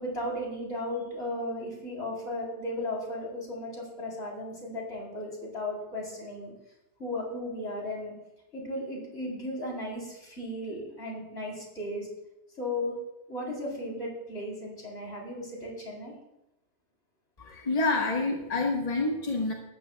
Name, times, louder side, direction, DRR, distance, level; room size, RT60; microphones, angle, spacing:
voice 1, 0.0-6.5 7.0-8.1 8.5-12.1 12.6-13.0 13.3-16.1, left 1 dB, 70° left, -2 dB, 4.0 m, -35 dB
voice 2, 17.4-19.5, left 3 dB, 35° left, -1 dB, 1.5 m, -28 dB
19.0 x 13.0 x 2.3 m, 0.91 s
omnidirectional pair, 1.1 m